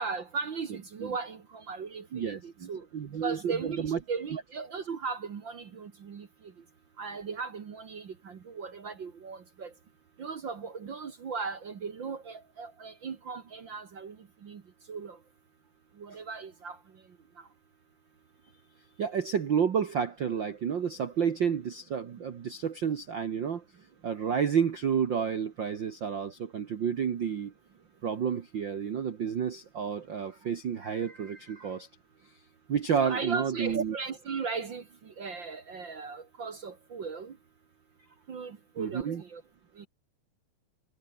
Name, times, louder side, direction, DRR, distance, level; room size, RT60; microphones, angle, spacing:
voice 1, 0.0-2.8 3.2-6.3 7.0-9.7 10.2-14.2 14.4-14.6 14.9-15.2 16.0-16.8 33.0-37.3 38.3-39.4 39.8-39.9, right 5 dB, 50° right, 1.4 m, -37 dB
voice 2, 2.1-4.0 4.3-4.4 19.0-23.6 24.0-27.5 28.0-31.9 32.7-34.0 38.8-39.2, right 7 dB, 85° right, 1.0 m, -30 dB
omnidirectional pair, 4.3 m